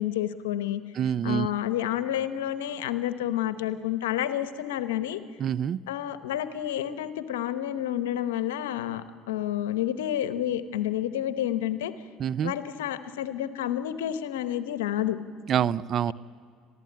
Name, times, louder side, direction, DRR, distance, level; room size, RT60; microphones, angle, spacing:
voice 1, 0.0-0.8 1.2-5.2 5.9-11.9 12.4-15.2, left 11 dB, 90° left, 11 dB, 0.9 m, -29 dB
voice 2, 0.9-1.5 5.4-5.8 12.2-12.5 15.5-16.1, right 9 dB, 50° right, 18 dB, 0.5 m, -26 dB
22.0 x 15.0 x 8.6 m, 2.2 s
hypercardioid pair, 75°, 0 cm